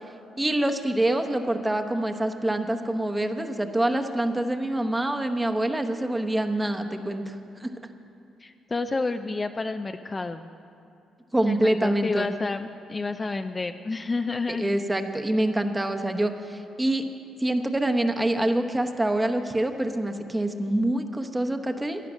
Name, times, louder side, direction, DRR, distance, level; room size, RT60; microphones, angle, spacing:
voice 1, 0.4-7.7 11.3-12.3 14.5-17.0 17.4-22.0, right 1 dB, 15° right, 6 dB, 1.0 m, -26 dB
voice 2, 8.4-10.5 11.5-14.7, left 3 dB, 25° left, 7 dB, 0.4 m, -30 dB
16.0 x 11.0 x 6.2 m, 2.7 s
cardioid pair, 90°, 0 cm